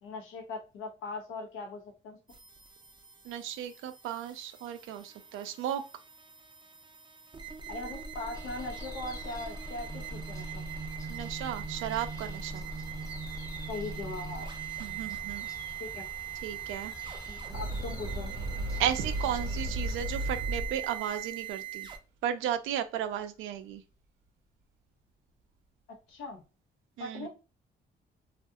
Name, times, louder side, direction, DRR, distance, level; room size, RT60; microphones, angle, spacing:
voice 1, 0.0-2.2 7.7-10.6 13.7-14.5 15.8-16.1 17.5-18.3 26.1-26.4 27.0-27.3, left 3 dB, 85° left, 0.7 m, -40 dB
sound 1, 2.3-22.0, right 6 dB, 25° right, 0.4 m, -41 dB
voice 2, 3.2-5.8 11.1-12.7 14.8-15.5 16.4-16.9 18.8-21.9 22.2-23.8 27.0-27.3, right 10 dB, 90° right, 0.4 m, -34 dB
sound 2, 8.3-19.6, left 1 dB, 15° left, 0.6 m, -49 dB
sound 3, 17.5-21.3, right 1 dB, 55° right, 0.7 m, -35 dB
2.7 x 2.4 x 2.3 m
cardioid pair, 90°, 20 cm